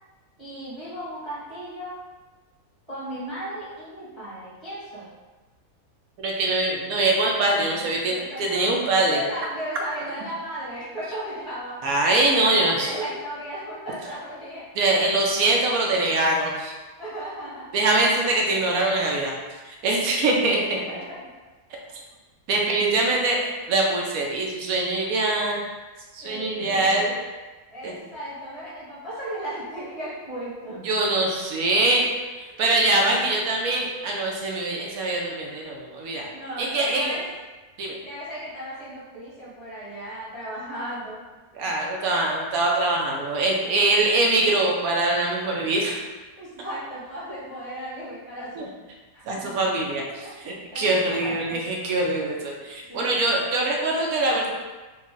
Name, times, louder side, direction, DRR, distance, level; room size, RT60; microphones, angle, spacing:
voice 1, 0.4-2.0 2.9-5.1 8.2-8.6 9.1-11.8 12.3-14.6 17.0-17.6 19.9-20.2 20.7-21.2 26.2-27.2 27.7-30.8 33.2-33.3 36.3-37.2 38.0-41.2 43.7-43.9 44.3-44.4 46.4-48.7 49.1-49.6 50.2-51.7 52.9-53.2, right 1 dB, 20° right, -10 dB, 1.0 m, -36 dB
voice 2, 6.2-9.2 11.8-12.9 14.8-16.7 17.7-19.3 19.6-20.8 22.5-25.7 26.1-27.1 27.8-27.9 30.8-32.1 32.4-37.1 37.8-38.0 41.5-46.0 48.6-48.7 49.3-54.5, right 2 dB, 70° right, -1 dB, 1.0 m, -23 dB
3.1 x 2.5 x 3.6 m, 1.2 s
omnidirectional pair, 1.7 m